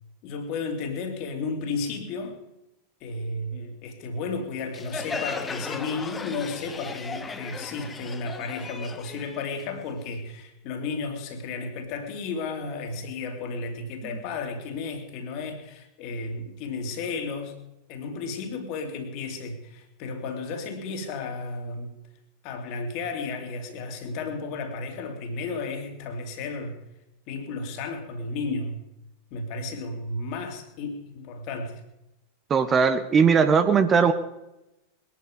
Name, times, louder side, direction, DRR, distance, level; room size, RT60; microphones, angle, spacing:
voice 1, 0.2-2.4 3.0-17.6 17.9-22.0 22.4-26.8 27.3-28.8 29.3-31.8, left 3 dB, 45° left, 5 dB, 2.6 m, -33 dB
Crowd, 4.7-10.2, left 4 dB, 15° left, 1.0 m, -36 dB
voice 2, 32.5-34.1, right 6 dB, 25° right, 10 dB, 0.9 m, -19 dB
21.0 x 10.5 x 5.2 m, 0.94 s
figure-of-eight pair, 90°, 0 cm